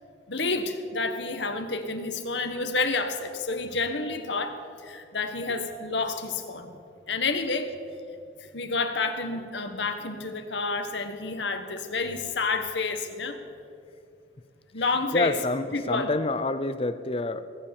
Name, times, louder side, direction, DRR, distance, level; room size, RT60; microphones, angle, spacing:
voice 1, 0.3-6.7 7.1-7.7 8.5-13.4 14.7-15.4 15.7-16.1, left 3 dB, 65° left, 7 dB, 1.4 m, -29 dB
voice 2, 15.1-17.4, left 2 dB, 30° left, 12 dB, 0.6 m, -27 dB
20.5 x 8.1 x 7.1 m, 2.5 s
head